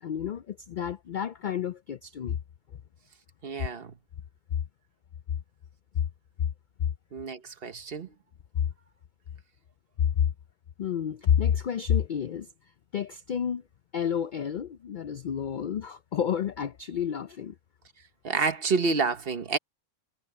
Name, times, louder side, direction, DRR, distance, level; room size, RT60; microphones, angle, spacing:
voice 1, 0.0-2.4 10.2-10.3 10.8-12.5 12.9-13.6 13.9-17.5, left 8 dB, 65° left, 0.4 m, -29 dB
voice 2, 3.4-3.9 7.1-8.1 18.2-19.6, right 4 dB, 50° right, 1.2 m, -28 dB
omnidirectional pair, 1.4 m